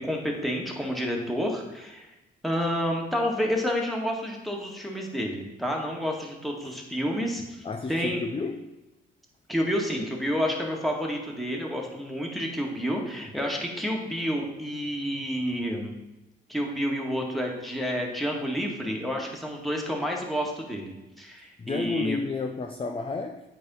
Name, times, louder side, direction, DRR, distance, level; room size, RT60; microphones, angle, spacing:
voice 1, 0.0-2.1 2.4-8.2 9.5-15.9 16.5-22.2, equal, ahead, -1 dB, 1.9 m, -29 dB
voice 2, 7.6-8.7 21.6-23.4, left 3 dB, 25° left, 5 dB, 0.6 m, -31 dB
8.6 x 4.4 x 5.6 m, 0.99 s
cardioid pair, 90°, 20 cm